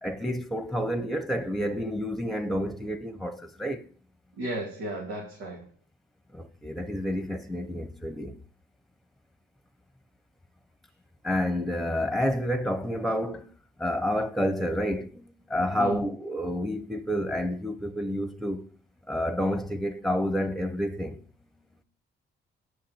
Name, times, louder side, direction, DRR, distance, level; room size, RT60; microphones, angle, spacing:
voice 1, 0.0-3.8 6.3-8.4 11.2-13.5 13.8-18.7 19.1-21.2, equal, ahead, 1.2 m, -29 dB
voice 2, 4.4-5.7 15.8-16.1, right 1 dB, 85° right, 2.8 m, -34 dB
9.5 x 5.8 x 7.6 m
cardioid pair, 90°, 20 cm